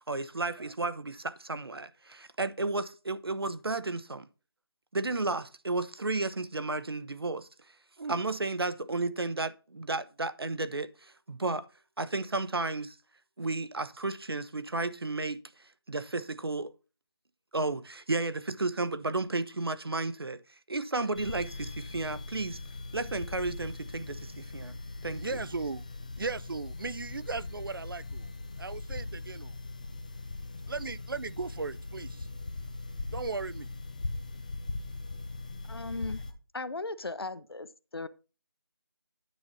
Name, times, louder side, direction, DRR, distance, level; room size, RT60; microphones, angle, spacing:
voice 1, 0.1-4.3 4.9-7.5 8.1-11.7 12.0-13.0 13.4-15.4 15.9-16.7 17.5-20.4 20.7-22.6 22.9-24.8 25.0-25.2, right 3 dB, 80° right, 1.1 m, -33 dB
sound 1, 21.1-36.3, left 2 dB, 20° left, 0.6 m, -40 dB
voice 2, 25.2-25.9 26.2-28.3 28.6-29.6 30.7-32.3 33.1-33.7, right 4 dB, 65° right, 0.5 m, -37 dB
voice 3, 35.7-36.2 36.5-37.7 37.9-38.1, left 3 dB, 90° left, 0.9 m, -36 dB
9.6 x 6.0 x 4.0 m
figure-of-eight pair, 175°, 12 cm